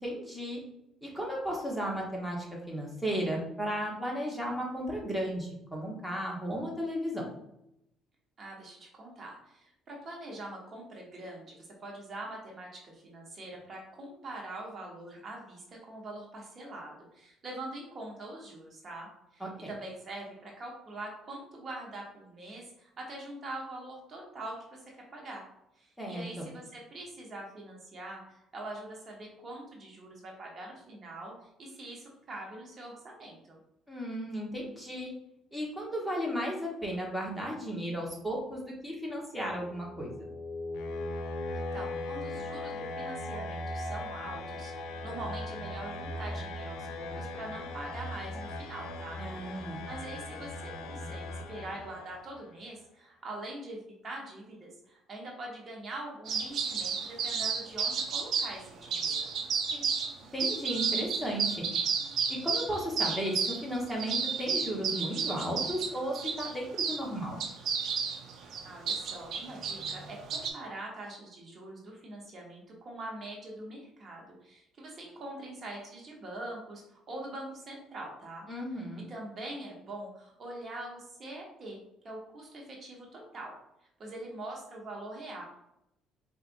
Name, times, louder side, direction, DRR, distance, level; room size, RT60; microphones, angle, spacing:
voice 1, 0.0-0.6 1.0-7.2 19.4-19.7 26.0-26.4 33.9-35.1 35.5-40.1 49.2-49.8 59.7-59.9 60.3-61.6 62.3-67.4 78.5-79.0, equal, ahead, -3 dB, 1.1 m, -34 dB
voice 2, 8.4-24.8 25.1-25.4 25.8-33.6 41.5-49.2 49.5-59.3 68.6-78.5 79.1-81.8 82.0-83.5 84.0-85.4, right 2 dB, 40° right, -1 dB, 1.0 m, -43 dB
sound 1, 39.5-52.4, left 2 dB, 85° left, 0.5 m, -39 dB
sound 2, 56.3-58.6 58.9-60.1 60.4-67.0 67.4-70.5, right 5 dB, 60° right, 0.6 m, -32 dB
4.5 x 2.5 x 2.5 m, 0.81 s
cardioid pair, 105°, 0 cm